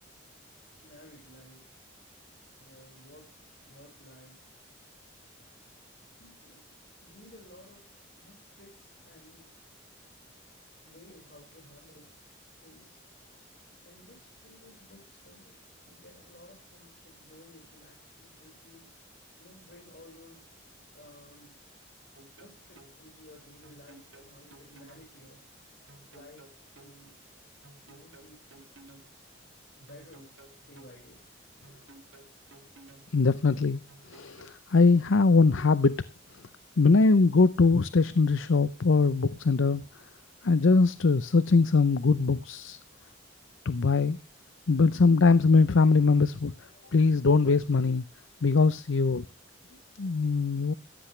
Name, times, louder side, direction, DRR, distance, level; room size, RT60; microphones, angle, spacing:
voice 1, 0.8-1.6 2.6-3.3 3.7-4.4 6.2-6.6 7.0-9.5 10.9-12.1 12.6-13.0 13.8-15.6 15.9-19.0 19.4-20.4 20.9-21.5 22.4-25.5 26.1-26.5 26.8-27.1 27.8-28.5 29.3-29.5 29.8-30.3 30.6-31.2 46.7-47.0, left 1 dB, 55° left, 5.2 m, -55 dB
sound 1, 22.1-22.9 23.6-25.1 25.9-26.9 27.6-29.1 29.9-30.9 31.6-33.1 33.9-34.9, right 2 dB, 75° right, 2.4 m, -54 dB
voice 2, 33.1-36.0 36.8-39.8 40.4-42.8 43.6-44.2 44.7-46.5 46.9-48.0 48.4-49.3 50.0-50.7, left 4 dB, 75° left, 0.6 m, -22 dB
16.0 x 14.0 x 3.3 m
head